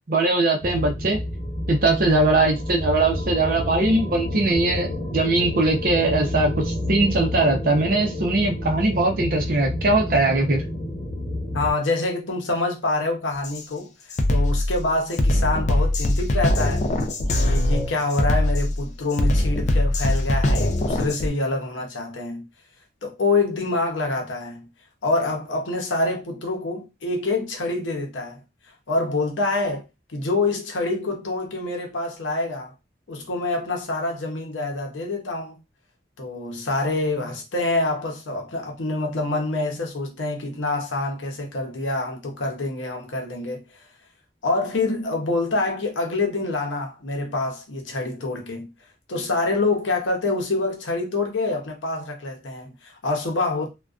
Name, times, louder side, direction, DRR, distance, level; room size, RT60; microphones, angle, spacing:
voice 1, 0.1-1.2 1.7-10.6, right 2 dB, 50° right, 0.5 m, -21 dB
sound 1, 0.6-11.7, left 1 dB, 25° left, 0.9 m, -29 dB
voice 2, 11.5-13.9 14.3-16.8 17.3-22.4 23.0-24.7 25.0-28.4 28.9-29.9 30.1-32.7 33.1-35.6 36.2-43.8 44.4-48.7 49.1-53.7, left 2 dB, 85° left, 0.7 m, -26 dB
Drum kit, 13.4-13.6 14.1-21.3, left 1 dB, 40° left, 0.3 m, -22 dB
2.4 x 2.2 x 2.3 m
head